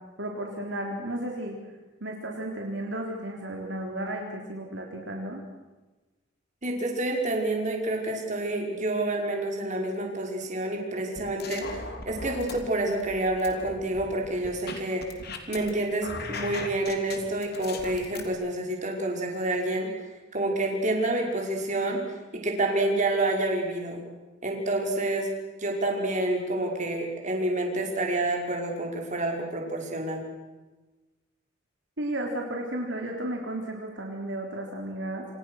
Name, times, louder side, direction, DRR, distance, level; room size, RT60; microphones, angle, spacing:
voice 1, 0.2-1.6 2.0-5.4 32.0-35.3, right 1 dB, 65° right, 0 dB, 3.7 m, -33 dB
voice 2, 6.6-15.0 15.5-22.0 22.3-24.0 24.4-25.3 25.6-30.2, right 2 dB, 40° right, 1 dB, 5.4 m, -28 dB
sound 1, 11.2-12.6 13.0-15.7 16.0-18.3, left 3 dB, 55° left, 3.4 m, -38 dB
27.5 x 27.5 x 6.5 m, 1.2 s
head